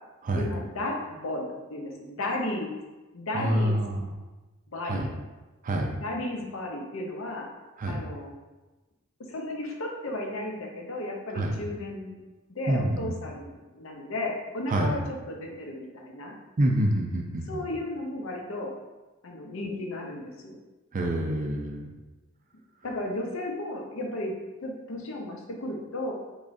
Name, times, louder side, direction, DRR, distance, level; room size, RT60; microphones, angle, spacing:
voice 1, 0.3-2.7 3.1-3.8 4.7-5.1 6.0-7.5 7.9-8.3 9.3-12.2 12.5-16.3 17.5-18.7 19.2-20.6 22.8-26.1, left 1 dB, 75° left, 1 dB, 0.6 m, -34 dB
voice 2, 3.3-4.1 4.8-5.1 5.6-5.9 7.8-8.0 11.3-11.6 12.7-13.2 14.7-15.0 16.6-17.6 20.9-21.9, right 1 dB, 40° right, 2 dB, 0.4 m, -27 dB
3.6 x 3.1 x 2.6 m, 1.1 s
head